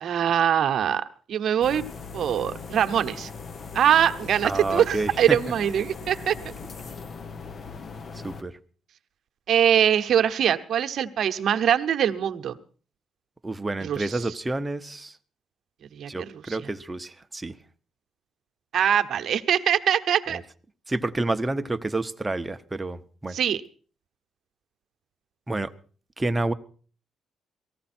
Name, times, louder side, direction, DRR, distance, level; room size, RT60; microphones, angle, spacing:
voice 1, 0.0-1.8 2.1-3.3 3.7-6.5 9.5-12.6 13.8-14.4 15.9-16.7 18.7-20.4 23.3-23.6, right 9 dB, 65° right, 8 dB, 1.0 m, -23 dB
sound 1, 1.6-8.4, left 5 dB, 45° left, 1.0 m, -39 dB
voice 2, 4.4-5.4 8.2-8.5 13.4-15.1 16.1-17.5 20.9-23.4 25.5-25.7 26.2-26.5, right 2 dB, 15° right, 9 dB, 0.9 m, -29 dB
18.5 x 15.0 x 4.4 m, 0.42 s
cardioid pair, 90°, 0 cm